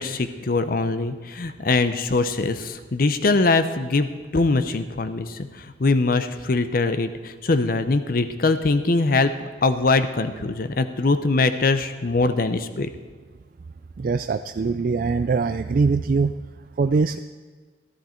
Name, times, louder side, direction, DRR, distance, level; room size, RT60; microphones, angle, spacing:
voice 1, 0.0-9.3 9.6-12.9, left 3 dB, 55° left, 10 dB, 0.7 m, -22 dB
voice 2, 14.0-16.3 16.8-17.2, right 4 dB, 50° right, 9 dB, 0.3 m, -22 dB
14.0 x 13.0 x 4.4 m, 1.5 s
head